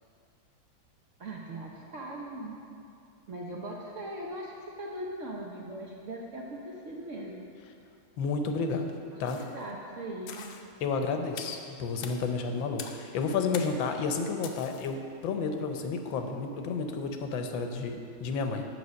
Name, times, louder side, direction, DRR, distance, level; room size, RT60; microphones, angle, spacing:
voice 1, 1.2-2.6 3.3-7.4 9.1-10.5, right 1 dB, 55° right, -2 dB, 0.9 m, -40 dB
voice 2, 8.2-9.4 10.8-18.7, left 4 dB, 85° left, 5 dB, 1.5 m, -31 dB
sound 1, 9.2-9.6 10.3-10.7 11.4-11.6 12.0-12.2 12.8-13.1 13.5-13.9 14.4-14.9, left 7 dB, 70° left, 1.1 m, -43 dB
8.0 x 5.2 x 6.3 m, 2.4 s
omnidirectional pair, 2.1 m